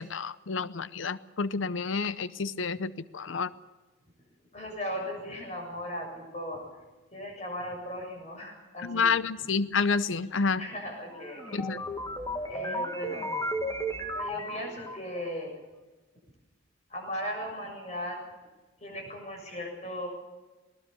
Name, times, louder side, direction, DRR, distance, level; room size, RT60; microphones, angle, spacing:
voice 1, 0.0-3.5 8.8-10.6 11.5-11.8, left 5 dB, 85° left, 15 dB, 0.7 m, -29 dB
voice 2, 4.5-6.8 7.1-9.1 10.6-11.6 12.5-13.4 14.1-15.6 16.9-18.2 18.8-20.1, equal, 35° left, 1 dB, 7.2 m, -37 dB
sound 1, 11.1-15.3, equal, 20° left, 2.1 m, -34 dB
20.0 x 19.5 x 6.9 m, 1.2 s
head